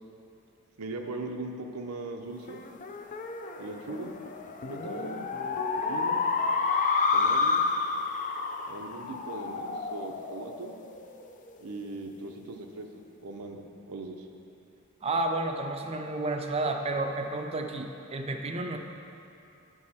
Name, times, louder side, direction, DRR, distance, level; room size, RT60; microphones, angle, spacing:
voice 1, 0.8-2.6 3.6-4.2 4.6-5.3 5.7-6.2 7.1-7.7 8.7-10.7 11.6-14.3, right 2 dB, 85° right, 3 dB, 0.7 m, -39 dB
sound 1, 2.5-11.3, left 4 dB, 35° left, 0.4 m, -30 dB
voice 2, 15.0-18.8, right 2 dB, 25° right, 4 dB, 0.5 m, -31 dB
10.0 x 4.8 x 4.2 m, 2.8 s
head